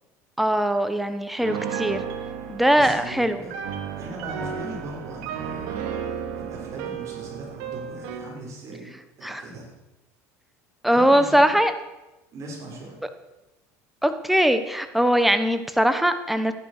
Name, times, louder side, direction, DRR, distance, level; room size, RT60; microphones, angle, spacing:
voice 1, 0.4-2.0 2.5-3.4 9.2-9.4 10.8-11.7 14.0-16.5, equal, ahead, 9 dB, 1.2 m, -21 dB
Piano, 1.4-8.3, right 7 dB, 75° right, 2.2 m, -33 dB
voice 2, 2.8-3.5 4.0-5.9 6.4-9.7 10.9-11.6 12.3-13.0, right 2 dB, 40° right, -2 dB, 6.0 m, -39 dB
14.0 x 10.5 x 6.7 m, 0.99 s
supercardioid pair, 110°, 8 cm